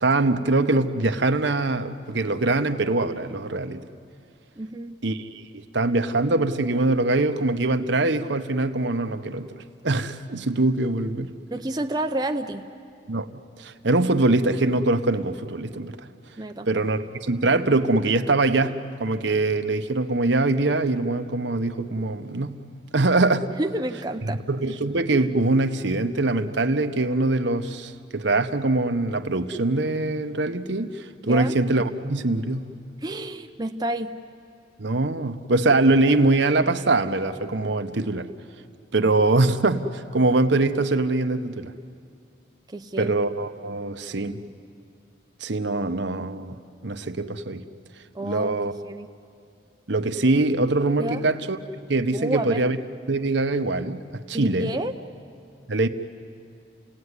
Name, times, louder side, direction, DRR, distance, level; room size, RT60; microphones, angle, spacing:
voice 1, 0.0-3.9 5.0-9.5 9.8-11.4 13.1-16.0 16.7-22.6 22.9-23.5 24.5-32.7 34.8-38.3 38.9-41.7 43.0-44.4 45.4-47.6 48.2-48.7 49.9-51.6 51.9-52.8 53.1-54.7 55.7-55.9, right 2 dB, 70° right, 8 dB, 1.0 m, -23 dB
voice 2, 4.6-5.0 11.5-12.7 16.4-16.7 23.6-24.5 31.2-31.5 33.0-34.2 42.7-43.2 48.1-49.1 51.0-51.2 52.1-52.7 54.3-54.9, right 1 dB, 20° right, 4 dB, 0.6 m, -29 dB
30.0 x 18.0 x 9.7 m, 2.4 s
head